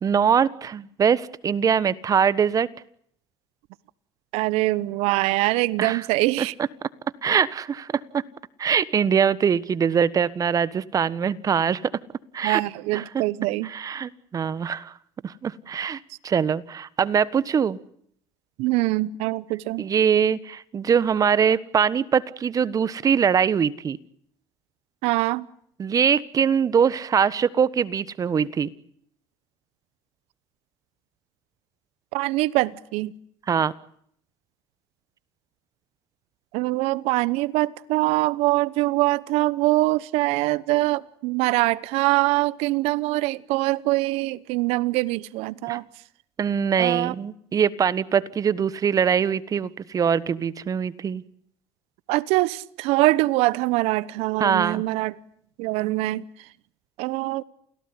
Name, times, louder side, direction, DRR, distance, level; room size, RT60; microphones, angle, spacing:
voice 1, 0.0-2.7 5.8-6.0 6.4-6.5 7.2-8.2 8.6-11.9 12.3-12.6 12.9-13.2 13.6-14.9 15.2-17.8 19.8-24.0 25.8-28.7 33.5-33.7 45.7-45.8 46.4-51.2 54.4-54.8, right 7 dB, 35° right, 1.4 m, -22 dB
voice 2, 4.3-6.5 12.4-13.7 18.6-19.9 25.0-25.5 32.1-33.1 36.5-45.8 46.8-47.1 52.1-55.1 55.6-56.2 57.0-57.4, right 20 dB, 80° right, 1.0 m, -23 dB
29.0 x 17.5 x 9.8 m
cardioid pair, 110°, 10 cm